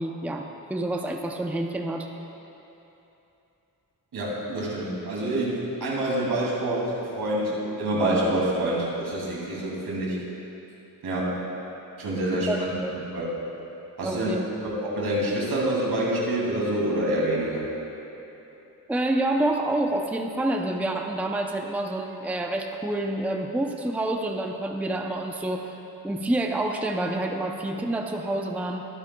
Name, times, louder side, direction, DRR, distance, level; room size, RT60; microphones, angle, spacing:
voice 1, 0.0-2.1 12.3-12.9 14.0-14.4 18.9-25.7 26.0-28.9, right 1 dB, 5° right, 2 dB, 0.6 m, -28 dB
voice 2, 4.1-10.2 11.0-11.4 12.0-13.3 14.0-14.3 14.6-17.7, right 1 dB, 75° right, -5 dB, 2.8 m, -27 dB
23.0 x 8.8 x 2.3 m, 3.0 s
wide cardioid pair, 105°, 38 cm